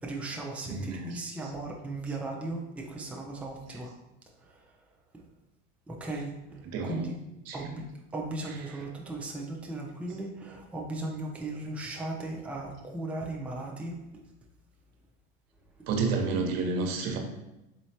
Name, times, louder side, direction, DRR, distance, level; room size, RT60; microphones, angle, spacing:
voice 1, 0.0-3.9 4.4-4.7 5.1-5.2 5.9-7.2 7.5-7.8 8.1-13.9, right 2 dB, 5° right, -1 dB, 0.5 m, -37 dB
voice 2, 0.7-1.5 2.1-2.2 3.7-3.8 6.1-6.2 6.6-7.2 7.4-7.7 8.4-8.9 10.1-10.2 15.9-17.2, right 4 dB, 60° right, 2 dB, 0.9 m, -32 dB
4.0 x 3.1 x 2.7 m, 0.94 s
hypercardioid pair, 95°, 31 cm